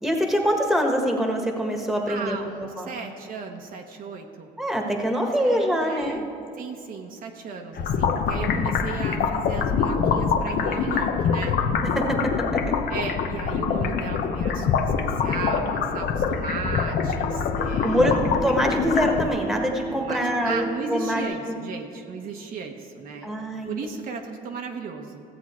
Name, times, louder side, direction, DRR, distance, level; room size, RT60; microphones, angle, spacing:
voice 1, 0.0-2.4 2.8-2.9 4.6-6.2 11.9-12.3 17.8-21.6 23.2-23.7, equal, ahead, 2 dB, 1.3 m, -24 dB
voice 2, 2.1-4.5 5.4-6.3 6.6-11.6 12.9-18.2 20.0-23.3 23.7-25.2, right 5 dB, 55° right, 3 dB, 0.9 m, -35 dB
sound 1, 7.8-19.3, left 6 dB, 70° left, 0.8 m, -25 dB
sound 2, 15.0-21.2, right 2 dB, 25° right, 0.9 m, -36 dB
15.0 x 7.8 x 4.3 m, 2.5 s
cardioid pair, 110°, 17 cm